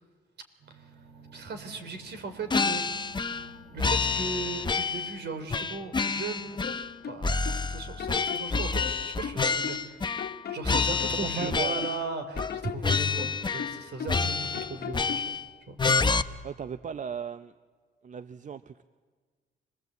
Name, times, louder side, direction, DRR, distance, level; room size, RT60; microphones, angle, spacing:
sound 1, 0.6-10.6, right 3 dB, 85° right, 3.4 m, -55 dB
voice 1, 1.3-3.2 3.7-6.6 7.1-15.4 15.7-15.8, right 4 dB, 60° right, 7 dB, 3.5 m, -37 dB
sound 2, 2.5-3.5 3.8-5.2 5.5-6.9 7.2-10.4 10.6-12.0 12.4-12.6 12.8-13.8 14.1-15.5 15.8-16.2, left 4 dB, 20° left, 0.8 m, -28 dB
sound 3, 6.6-7.6 8.0-9.9 10.2-12.0 12.4-14.3 14.5-15.4, left 8 dB, 55° left, 1.0 m, -38 dB
voice 2, 11.4-11.9 16.4-17.5 18.0-18.8, right 7 dB, 40° right, 12 dB, 0.6 m, -36 dB
25.0 x 19.5 x 8.1 m, 1.5 s
cardioid pair, 90°, 20 cm